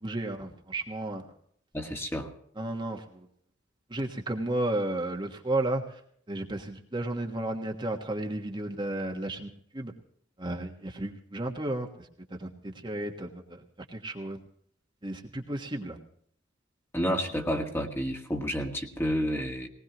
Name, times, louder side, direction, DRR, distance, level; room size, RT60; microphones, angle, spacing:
voice 1, 0.0-1.2 2.6-3.2 3.9-6.0 6.3-9.9 10.4-13.6 13.9-14.4 15.0-16.0, right 1 dB, 25° right, 2 dB, 1.4 m, -33 dB
voice 2, 1.7-2.3 16.9-19.7, equal, 10° left, 3 dB, 1.8 m, -30 dB
20.0 x 19.5 x 3.0 m, 0.64 s
head